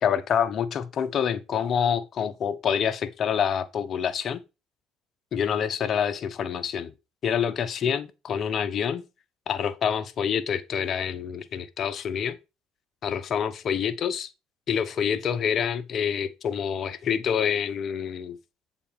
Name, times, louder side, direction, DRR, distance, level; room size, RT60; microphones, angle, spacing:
voice 1, 0.0-4.4 5.3-6.9 7.2-9.0 9.5-12.4 13.0-14.3 14.7-18.4, left 8 dB, 50° left, 1.0 m, -27 dB
8.4 x 4.2 x 5.9 m
hypercardioid pair, 55°, 0 cm